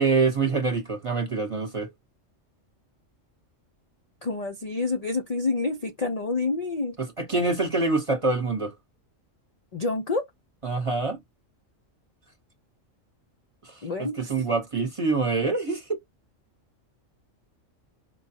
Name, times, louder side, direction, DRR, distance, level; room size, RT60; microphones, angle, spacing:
voice 1, 0.0-1.9 7.0-8.8 10.6-11.2 13.6-16.0, right 3 dB, 30° right, 0.9 m, -25 dB
voice 2, 4.2-6.9 9.7-10.2 13.8-14.4, left 3 dB, 45° left, 0.5 m, -28 dB
4.7 x 2.2 x 2.7 m
omnidirectional pair, 1.3 m